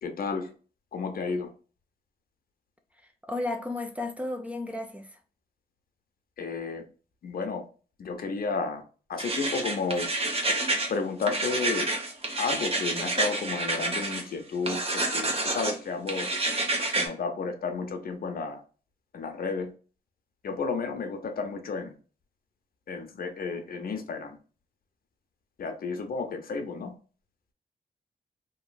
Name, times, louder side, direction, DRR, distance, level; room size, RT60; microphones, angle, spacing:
voice 1, 0.0-0.5 0.9-1.5 6.4-6.8 7.2-7.6 8.0-8.8 9.1-10.1 10.9-11.9 12.4-16.3 16.9-18.6 19.1-19.7 20.4-21.9 22.9-24.4 25.6-26.9, left 4 dB, 65° left, 0.6 m, -32 dB
voice 2, 3.3-5.2, left 2 dB, 10° right, 0.5 m, -33 dB
sound 1, 9.2-10.9 11.2-14.2 14.7-15.8 16.1-17.1, right 2 dB, 35° right, 0.9 m, -28 dB
3.0 x 2.7 x 2.2 m
wide cardioid pair, 105°, 16 cm